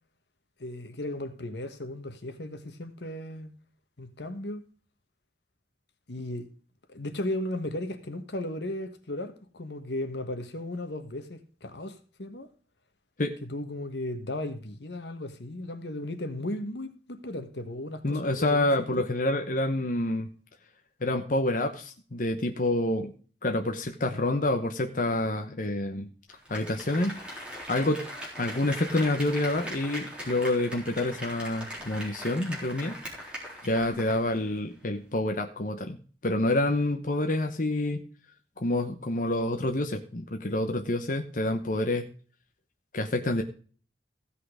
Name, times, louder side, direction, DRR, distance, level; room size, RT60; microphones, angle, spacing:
voice 1, 0.6-3.5 4.0-4.6 6.1-6.5 6.9-12.5 13.4-18.7 19.0-19.1, left 1 dB, 75° left, 1.4 m, -36 dB
voice 2, 18.0-20.3 21.0-23.1 23.4-26.1 26.5-27.2 27.7-28.0 28.4-32.9 33.6-38.0 38.6-42.1 42.9-43.4, left 1 dB, 50° left, 1.0 m, -28 dB
Applause, 26.3-34.5 34.8-34.9, equal, 5° right, 3.7 m, -40 dB
15.5 x 5.7 x 4.9 m
head